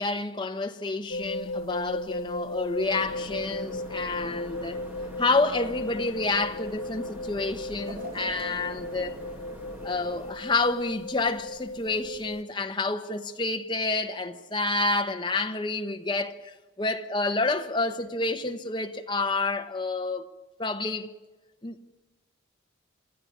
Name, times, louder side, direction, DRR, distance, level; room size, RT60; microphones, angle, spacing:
voice 1, 0.0-4.8 5.2-9.2 9.8-16.5 16.8-20.3 20.6-21.1 21.6-21.8, left 3 dB, 25° left, 1.0 m, -29 dB
sound 1, 1.1-12.4, left 1 dB, 75° left, 0.7 m, -36 dB
sound 2, 2.8-10.3, equal, 10° right, 2.1 m, -45 dB
sound 3, 7.9-11.0 11.5-11.6 12.6-12.7, equal, 45° right, 1.1 m, -46 dB
28.5 x 12.5 x 9.7 m
head